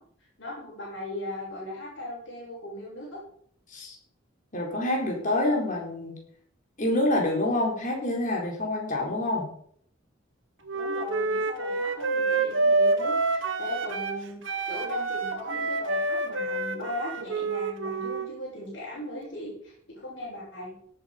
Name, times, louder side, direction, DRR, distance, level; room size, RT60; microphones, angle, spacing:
voice 1, 0.2-3.2 10.7-20.8, left 1 dB, 65° left, -8 dB, 6.6 m, -38 dB
voice 2, 4.5-6.2 6.8-9.5, left 1 dB, 40° left, 0 dB, 4.4 m, -27 dB
Wind instrument woodwind instrument, 10.7-14.2 14.4-18.3, right 3 dB, 90° right, 1.7 m, -27 dB
17.5 x 8.1 x 5.4 m, 0.62 s
head